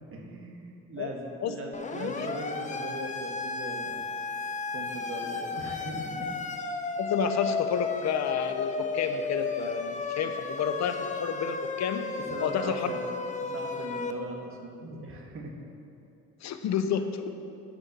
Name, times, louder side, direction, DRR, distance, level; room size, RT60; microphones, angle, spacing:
voice 1, 0.1-4.0 4.7-6.3 12.3-13.1 13.4-15.5, right 2 dB, 45° right, 0 dB, 1.6 m, -39 dB
Siren, 1.7-14.1, left 4 dB, 25° left, 0.6 m, -34 dB
voice 2, 7.0-12.1 12.4-12.9 16.4-17.3, left 7 dB, 65° left, 8 dB, 0.8 m, -30 dB
11.5 x 4.5 x 6.5 m, 2.6 s
cardioid pair, 90°, 30 cm